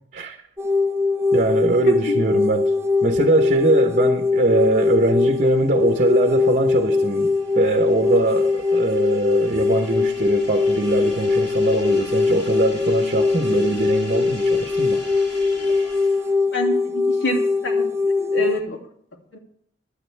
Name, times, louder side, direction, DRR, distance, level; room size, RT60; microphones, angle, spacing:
sound 1, 0.6-18.6, left 4 dB, 15° right, 0.6 m, -21 dB
voice 1, 1.3-2.7 3.0-15.0, right 2 dB, 45° right, 1.0 m, -21 dB
sound 2, 4.5-16.4, left 1 dB, 60° left, 3.2 m, -42 dB
voice 2, 16.5-18.9 19.3-19.4, left 1 dB, 75° left, 2.6 m, -27 dB
16.5 x 11.5 x 3.4 m
head